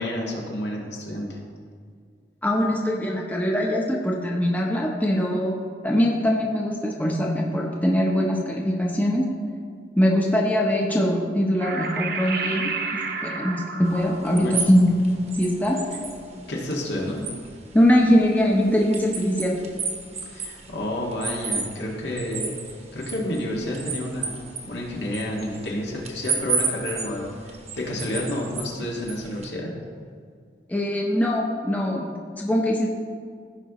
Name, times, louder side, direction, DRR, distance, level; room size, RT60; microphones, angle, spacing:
voice 1, 0.0-1.4 14.2-14.7 16.5-17.2 20.3-22.6 22.9-24.4 24.6-29.7, left 1 dB, 80° left, -2 dB, 1.9 m, -30 dB
voice 2, 2.4-5.6 5.8-9.2 10.0-12.6 13.2-14.9 15.4-15.8 17.7-19.6 30.7-32.9, equal, 10° left, -2 dB, 0.8 m, -22 dB
sound 1, 11.6-16.4, right 4 dB, 55° right, 0.8 m, -32 dB
sound 2, 13.9-29.5, right 5 dB, 40° right, 1.1 m, -34 dB
15.5 x 5.4 x 3.1 m, 2.1 s
head